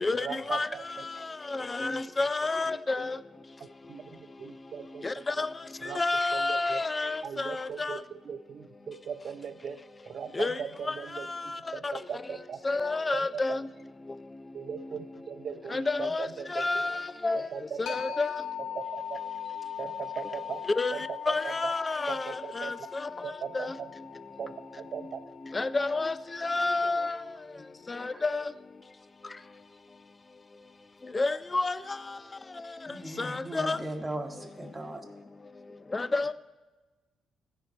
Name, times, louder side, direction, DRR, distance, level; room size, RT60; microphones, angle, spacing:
voice 1, 0.2-0.8 1.6-2.0 2.7-2.8 3.9-5.4 5.8-6.0 6.3-6.8 7.2-8.0 8.2-12.6 13.1-13.6 14.5-16.8 17.3-18.2 18.7-19.2 19.8-20.6 20.9-21.7 22.1-22.8 23.2-23.9 24.4-25.2, right 7 dB, 55° right, 0.6 m, -39 dB
voice 2, 1.5-3.1 5.0-5.5 6.0-7.5 10.4-10.5 11.8-11.9 12.7-13.6 15.7-16.3 16.6-16.9 17.2-17.5 18.2-18.3 20.8-20.9 21.3-22.2 25.6-26.1 26.4-27.1 28.2-28.4 31.1-31.7 33.6-33.8 35.9-36.3, left 3 dB, 25° left, 0.4 m, -28 dB
sound 1, 17.9-27.2, left 9 dB, 85° left, 0.7 m, -41 dB
voice 3, 32.9-35.0, right 1 dB, 15° right, 1.2 m, -38 dB
15.5 x 5.2 x 4.2 m
cardioid pair, 90°, 0 cm